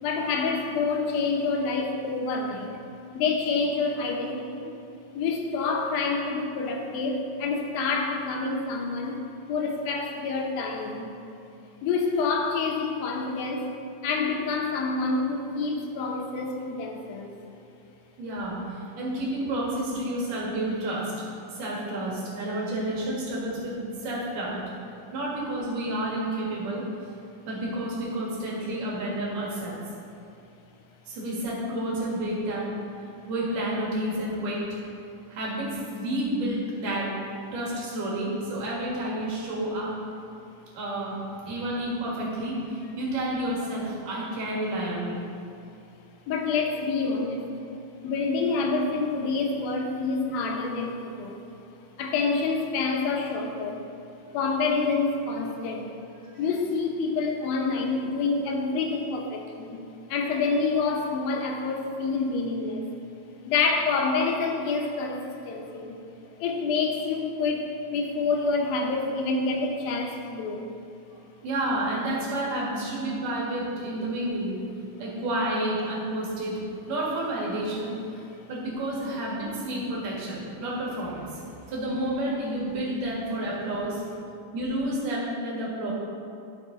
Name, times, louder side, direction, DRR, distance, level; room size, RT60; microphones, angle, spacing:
voice 1, 0.0-2.7 3.1-4.7 5.1-9.2 9.5-11.1 11.8-13.7 14.0-17.3 46.3-47.5 48.0-51.4 52.0-53.9 54.3-55.9 56.4-59.8 60.1-62.8 63.5-66.0 66.4-70.7 78.3-78.4, left 4 dB, 85° left, 2 dB, 2.8 m, -27 dB
voice 2, 18.2-21.3 21.5-24.6 25.1-26.8 27.5-29.8 31.1-32.7 33.3-34.8 35.3-37.1 37.5-39.9 40.7-41.2 41.4-45.2 71.4-74.6 75.0-76.6 76.9-81.4 81.7-84.0 84.5-85.9, right 1 dB, 65° right, -5 dB, 3.5 m, -30 dB
13.0 x 6.6 x 4.0 m, 2.5 s
omnidirectional pair, 4.1 m